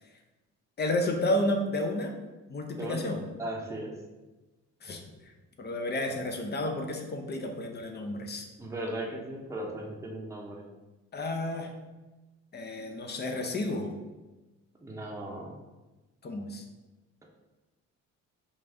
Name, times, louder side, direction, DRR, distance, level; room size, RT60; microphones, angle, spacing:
voice 1, 0.8-2.1 2.5-3.2 4.8-5.0 5.6-8.5 11.1-11.7 12.5-13.9 16.2-16.6, left 1 dB, 35° left, 4 dB, 0.7 m, -31 dB
voice 2, 3.4-3.9 8.6-10.6 14.8-15.5, right 1 dB, 10° right, -2 dB, 0.8 m, -37 dB
5.1 x 2.6 x 3.4 m, 1.1 s
cardioid pair, 90°, 30 cm